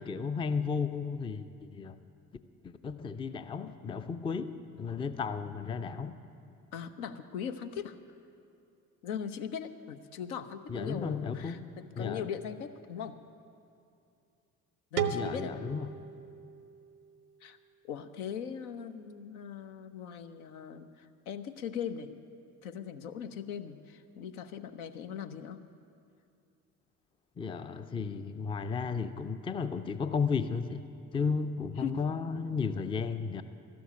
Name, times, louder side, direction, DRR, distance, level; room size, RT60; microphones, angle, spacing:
voice 1, 0.0-2.0 2.6-6.2 10.7-11.6 12.0-12.2 15.1-15.9 27.4-30.8 31.1-33.4, left 5 dB, 10° left, 11 dB, 0.4 m, -34 dB
voice 2, 6.7-8.0 9.0-13.2 14.9-15.6 17.4-17.6 17.8-22.1 22.6-25.6 31.8-32.0, left 8 dB, 70° left, 9 dB, 0.7 m, -40 dB
sound 1, 15.0-17.8, right 7 dB, 85° right, 0.6 m, -37 dB
12.5 x 7.0 x 9.9 m, 2.6 s
figure-of-eight pair, 45°, 45 cm